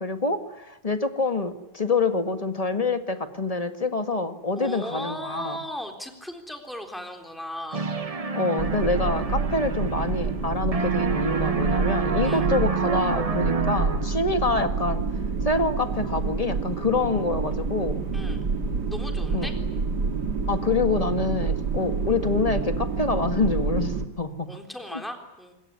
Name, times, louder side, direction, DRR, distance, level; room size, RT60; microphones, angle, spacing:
voice 1, 0.0-5.6 8.3-15.0 15.4-18.0 19.3-19.5 20.5-24.5 24.9-25.0, left 3 dB, 20° left, 7 dB, 1.8 m, -26 dB
voice 2, 4.6-7.9 12.2-12.5 18.1-18.4 18.9-19.5 24.5-25.5, left 1 dB, ahead, 4 dB, 3.6 m, -37 dB
sound 1, 7.7-10.5 10.7-14.3, right 5 dB, 25° right, 0.9 m, -28 dB
sound 2, 8.6-24.1, right 4 dB, 65° right, 2.9 m, -28 dB
26.5 x 22.0 x 9.6 m, 0.95 s
omnidirectional pair, 2.0 m